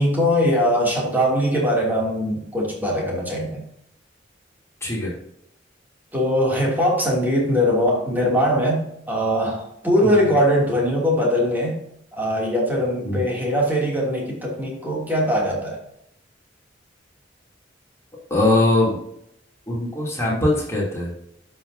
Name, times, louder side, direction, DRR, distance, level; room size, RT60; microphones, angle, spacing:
voice 1, 0.0-3.7 6.1-11.8 12.1-15.8, equal, 10° right, -3 dB, 2.8 m, -21 dB
voice 2, 4.8-5.1 10.0-10.3 13.0-13.2 18.3-19.0 19.7-21.1, left 2 dB, 15° left, -4 dB, 3.0 m, -21 dB
12.0 x 5.9 x 2.8 m, 0.75 s
head